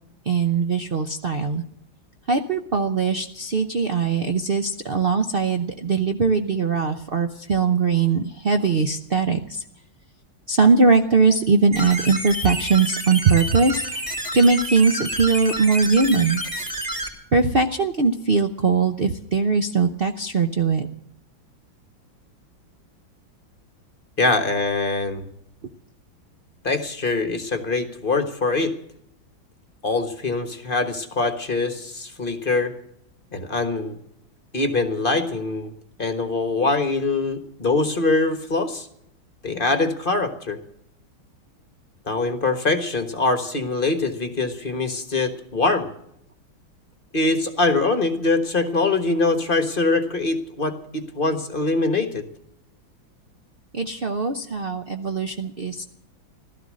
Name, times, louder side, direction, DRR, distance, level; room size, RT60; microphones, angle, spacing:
voice 1, 0.3-1.6 2.3-9.6 10.5-14.0 14.3-16.4 17.3-20.9 53.7-55.8, right 4 dB, 80° right, 6 dB, 0.5 m, -20 dB
sound 1, 11.7-17.1, right 1 dB, 15° right, 2.7 m, -29 dB
voice 2, 24.2-25.3 26.6-28.7 29.8-32.7 33.3-34.0 34.5-35.7 36.0-38.9 39.4-40.6 42.1-45.9 47.1-52.3, left 3 dB, 30° left, 8 dB, 1.3 m, -23 dB
16.0 x 13.0 x 6.3 m, 0.75 s
omnidirectional pair, 2.2 m